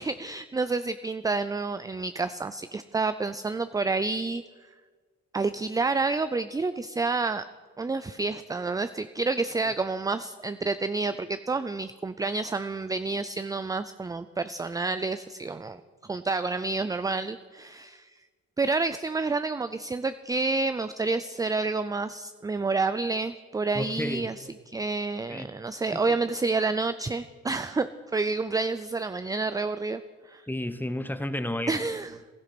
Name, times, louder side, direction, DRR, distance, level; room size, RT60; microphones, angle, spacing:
voice 1, 0.0-4.4 5.3-7.4 7.8-15.8 16.1-18.1 18.6-30.0 30.3-30.4 31.7-32.2, right 3 dB, 10° right, 12 dB, 0.4 m, -29 dB
voice 2, 23.7-24.3 25.3-25.5 25.9-26.2 30.5-31.8, left 1 dB, 5° left, 10 dB, 1.0 m, -32 dB
15.0 x 13.0 x 5.9 m, 1.5 s
cardioid pair, 90°, 30 cm